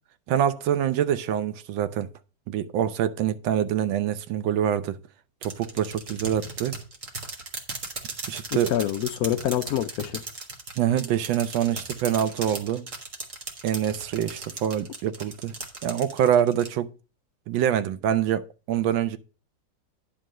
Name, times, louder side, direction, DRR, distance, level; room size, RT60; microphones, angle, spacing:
voice 1, 0.3-2.1 2.5-5.0 5.4-6.8 8.3-8.7 10.8-12.9 13.6-15.5 15.8-16.9 17.5-19.2, right 10 dB, 85° right, 1.4 m, -25 dB
sound 1, 5.4-16.7, right 3 dB, 45° right, 1.6 m, -37 dB
voice 2, 8.5-10.2, left 11 dB, 75° left, 0.8 m, -26 dB
10.5 x 3.8 x 6.1 m
omnidirectional pair, 2.0 m